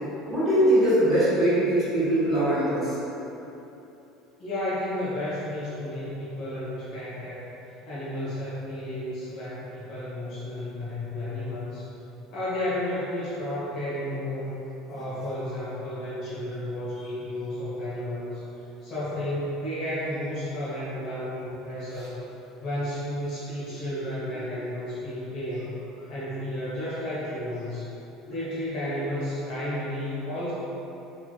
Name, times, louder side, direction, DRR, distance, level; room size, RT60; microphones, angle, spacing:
voice 1, 0.3-2.9 21.9-22.1, right 1 dB, 15° right, -14 dB, 1.4 m, -22 dB
voice 2, 4.4-7.5 7.8-11.9 12.3-14.6 14.9-18.4 18.8-22.2 22.6-25.8 26.1-27.9 28.3-30.5, left 1 dB, 45° left, -10 dB, 0.9 m, -32 dB
3.1 x 3.1 x 2.2 m, 3.0 s
cardioid pair, 175°, 0 cm